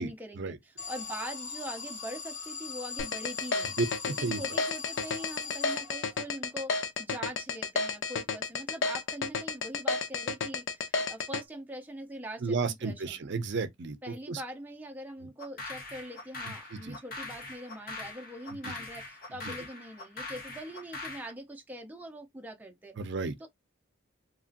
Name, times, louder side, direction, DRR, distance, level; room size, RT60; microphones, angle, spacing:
voice 1, 0.0-3.7 4.1-13.2 14.0-23.0 23.4-23.5, right 1 dB, 10° right, 0.5 m, -43 dB
Alarm, 0.8-6.3, left 5 dB, 85° left, 1.3 m, -41 dB
sound 1, 3.0-11.4, left 4 dB, 65° left, 0.5 m, -31 dB
voice 2, 3.8-4.4 12.4-14.0 14.3-14.4 16.5-17.0 18.6-18.7 19.4-19.5 23.0-23.5, right 3 dB, 60° right, 0.5 m, -33 dB
sound 2, 15.4-21.3, left 3 dB, 45° left, 0.8 m, -42 dB
2.9 x 2.6 x 2.5 m
head